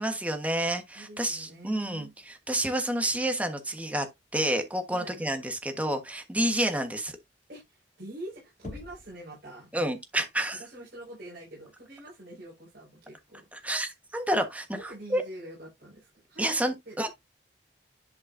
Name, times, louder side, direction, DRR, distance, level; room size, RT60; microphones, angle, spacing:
voice 1, 0.0-4.1 4.3-7.1 9.7-10.6 13.5-15.2 16.4-17.1, right 1 dB, 10° right, 1.3 m, -29 dB
voice 2, 0.9-2.1 4.9-5.4 7.5-9.7 10.6-13.5 14.7-16.5 16.8-17.1, right 1 dB, 55° right, 5.1 m, -45 dB
Knock, 8.6-9.3, left 3 dB, 40° left, 0.5 m, -43 dB
10.5 x 5.4 x 2.6 m
head